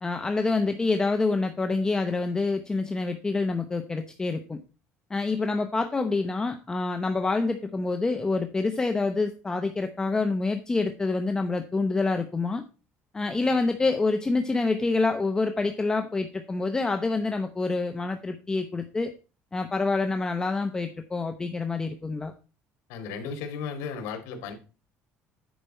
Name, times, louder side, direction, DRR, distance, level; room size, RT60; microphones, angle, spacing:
voice 1, 0.0-4.6 5.1-12.6 13.1-19.1 19.5-22.3, left 3 dB, 15° left, 6 dB, 0.8 m, -27 dB
voice 2, 22.9-24.5, left 6 dB, 85° left, 5 dB, 2.5 m, -35 dB
10.5 x 5.2 x 4.3 m, 0.34 s
cardioid pair, 145°, 5 cm